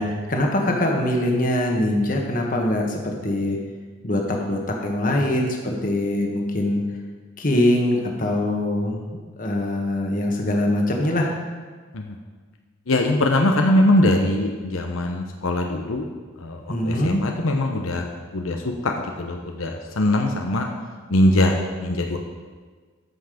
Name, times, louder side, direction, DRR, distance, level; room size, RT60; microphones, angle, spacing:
voice 1, 0.0-3.6 4.0-6.8 7.4-9.0 9.4-11.4 16.7-17.2, left 1 dB, 40° left, 1 dB, 1.4 m, -23 dB
voice 2, 12.9-16.1 16.4-18.0 18.3-18.6 18.8-20.7 21.1-21.5 21.8-22.2, left 1 dB, 80° left, 2 dB, 0.9 m, -21 dB
13.5 x 5.8 x 5.1 m, 1.5 s
head